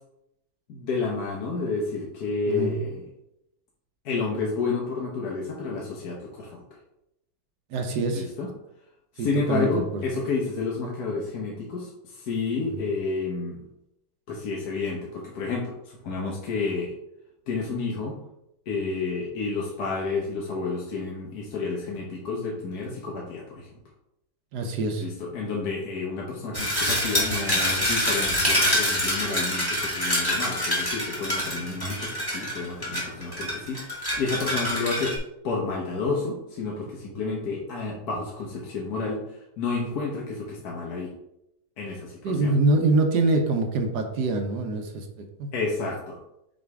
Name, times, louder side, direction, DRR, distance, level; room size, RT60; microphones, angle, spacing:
voice 1, 0.7-3.0 4.0-6.6 8.1-8.5 9.2-13.6 14.3-16.9 17.5-18.2 18.7-23.7 25.0-35.1 35.4-39.2 39.6-41.1 41.8-42.5 45.5-46.2, left 4 dB, 60° left, -2 dB, 1.4 m, -30 dB
voice 2, 2.5-2.8 7.7-8.3 9.2-10.0 12.7-12.8 24.5-25.1 31.5-32.0 42.2-45.5, right 2 dB, 65° right, 5 dB, 1.2 m, -25 dB
sound 1, 26.5-35.2, equal, 10° left, 1.8 m, -26 dB
6.3 x 3.3 x 4.7 m, 0.84 s
omnidirectional pair, 2.1 m